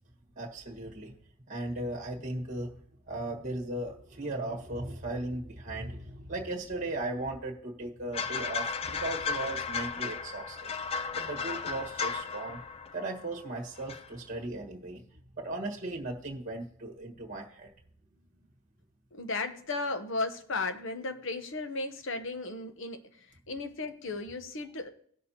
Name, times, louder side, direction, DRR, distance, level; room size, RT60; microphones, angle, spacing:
voice 1, 0.3-1.1 1.5-2.7 3.1-10.7 11.1-12.6 12.9-15.0 15.4-17.7, right 2 dB, 35° right, 1.6 m, -37 dB
sound 1, 8.1-13.5 13.8-14.1, left 5 dB, 30° left, 0.3 m, -35 dB
voice 2, 19.1-24.9, left 3 dB, 60° left, 0.9 m, -35 dB
18.0 x 6.5 x 2.9 m
head